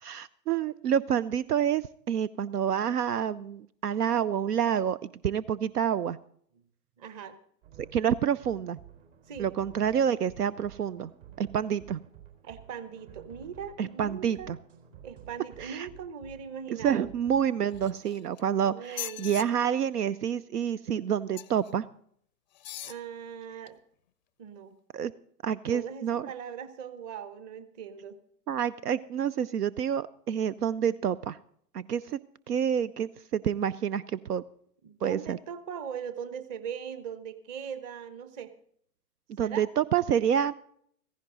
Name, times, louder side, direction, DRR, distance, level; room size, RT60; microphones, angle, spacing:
voice 1, 0.0-6.2 7.9-8.8 9.4-11.1 11.4-12.0 13.8-14.6 15.6-15.9 16.7-21.9 24.9-25.1 25.4-26.3 28.5-31.4 31.7-32.2 32.5-34.4 35.0-35.4 39.3-40.5, right 8 dB, 70° right, 20 dB, 0.6 m, -28 dB
voice 2, 7.0-7.4 9.3-9.5 12.4-14.5 15.0-17.1 18.7-19.3 22.8-23.8 24.4-24.8 25.7-28.2 34.8-38.5 39.4-39.6, right 7 dB, 25° right, 13 dB, 1.1 m, -40 dB
sound 1, 7.6-18.0, right 10 dB, 50° right, 3.9 m, -52 dB
sound 2, 17.7-18.4 18.9-19.5 21.3-21.7 22.5-23.0 23.7-23.8, left 12 dB, 30° left, 0.5 m, -40 dB
15.5 x 15.0 x 3.9 m, 0.65 s
figure-of-eight pair, 125°, 49 cm